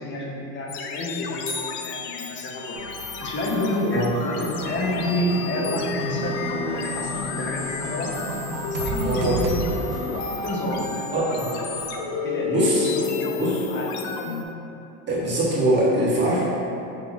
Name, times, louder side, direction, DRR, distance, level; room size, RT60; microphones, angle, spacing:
voice 1, 0.0-2.8 3.2-8.2 8.7-9.9 10.4-11.7 12.2-12.7 13.1-13.3 13.7-14.1, left 1 dB, 25° left, -2 dB, 0.6 m, -29 dB
sound 1, 0.7-14.5, left 4 dB, 70° left, 0.6 m, -31 dB
sound 2, 1.5-3.1, left 4 dB, 55° left, 1.3 m, -37 dB
sound 3, 2.8-12.0, right 2 dB, 45° right, 0.8 m, -34 dB
voice 2, 9.0-9.4 11.1-11.3 12.5-12.9 13.4-13.6 15.1-16.4, right 1 dB, 20° right, -9 dB, 1.4 m, -22 dB
5.6 x 3.0 x 2.3 m, 2.9 s
supercardioid pair, 110°, 49 cm